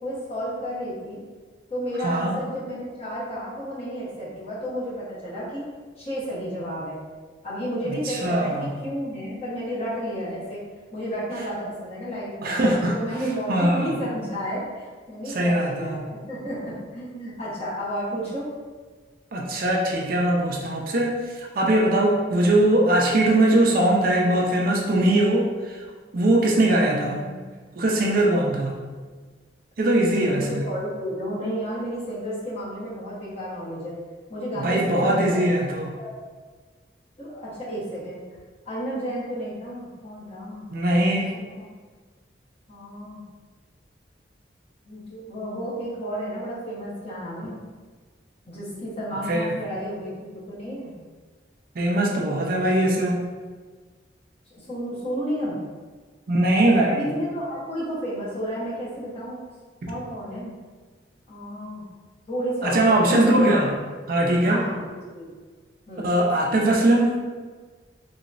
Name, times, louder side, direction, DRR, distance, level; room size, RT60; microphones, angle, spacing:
voice 1, 0.0-1.2 1.7-5.6 6.0-7.0 7.4-10.6 10.9-12.6 12.9-18.5 26.8-27.5 30.1-34.0 34.3-36.1 37.2-38.2 38.7-40.7 41.3-41.7 42.7-43.2 44.9-47.6 48.5-51.0 54.5-55.6 56.9-59.4 59.9-60.6 61.3-61.9 62.3-63.4 64.4-65.3 65.9-66.1, equal, 35° left, -8 dB, 1.0 m, -32 dB
voice 2, 2.0-2.4 8.0-8.7 12.4-13.0 13.5-13.9 15.3-16.0 19.3-25.5 26.1-27.2 27.8-28.8 29.8-30.6 34.6-35.9 40.7-41.3 49.3-49.5 51.8-53.2 56.3-57.0 62.6-63.7 64.1-64.6 66.0-67.2, right 1 dB, 50° right, -1 dB, 0.4 m, -21 dB
3.1 x 3.0 x 2.5 m, 1.5 s
head